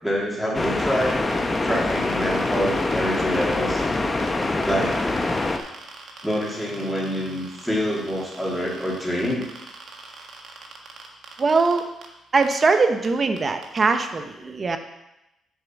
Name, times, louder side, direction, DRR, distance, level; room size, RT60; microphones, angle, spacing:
voice 1, 0.0-1.2 1.6-3.8 4.6-4.9 6.2-9.5 14.4-14.5, equal, ahead, -4 dB, 2.9 m, -26 dB
sound 1, 0.5-5.6, left 2 dB, 20° left, 0.8 m, -24 dB
sound 2, 0.6-3.9 4.2-12.1 12.4-12.7 13.0-13.1 13.4-14.0, right 4 dB, 60° right, 1.5 m, -42 dB
voice 2, 11.4-11.8 12.3-14.8, right 4 dB, 35° right, 7 dB, 0.9 m, -21 dB
7.4 x 4.9 x 7.1 m, 0.91 s
cardioid pair, 90°, 0 cm